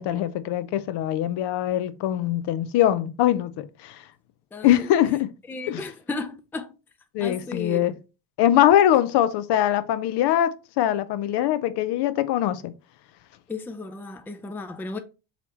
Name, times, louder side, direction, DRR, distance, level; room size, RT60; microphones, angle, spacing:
voice 1, 0.0-4.0 4.6-5.3 5.7-5.8 7.1-7.9 8.4-12.7, left 12 dB, 55° left, 0.6 m, -22 dB
voice 2, 4.5-4.9 5.5-6.7 7.2-8.0 13.5-15.0, left 3 dB, 5° left, 0.4 m, -34 dB
4.1 x 2.8 x 4.3 m
hypercardioid pair, 70°, 49 cm